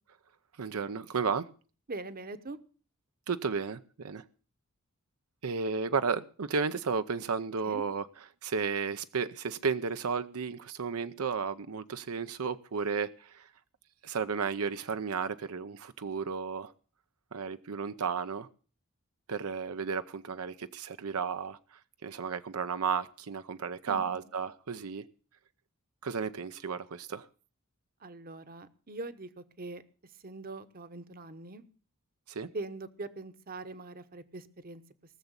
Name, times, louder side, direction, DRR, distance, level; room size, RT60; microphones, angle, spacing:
voice 1, 0.6-1.5 3.3-4.2 5.4-8.1 8.4-13.5 14.0-16.7 17.3-18.5 19.3-25.0 26.0-27.3 32.3-32.5, right 5 dB, 80° right, 11 dB, 0.7 m, -33 dB
voice 2, 1.9-2.6 7.7-7.8 23.9-24.2 28.0-29.8 30.2-31.6 32.5-34.8, right 2 dB, 40° right, 12 dB, 1.0 m, -42 dB
18.5 x 7.1 x 8.1 m, 0.39 s
head